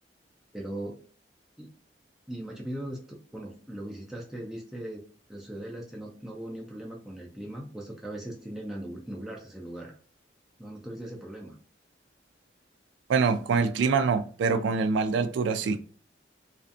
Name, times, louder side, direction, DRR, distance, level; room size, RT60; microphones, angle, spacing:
voice 1, 0.5-1.0 1.6-1.7 2.3-5.0 5.3-9.9 10.6-11.6, right 1 dB, 5° right, -3 dB, 0.4 m, -39 dB
voice 2, 13.1-15.8, right 5 dB, 85° right, 9 dB, 0.3 m, -25 dB
2.5 x 2.3 x 2.5 m, 0.42 s
head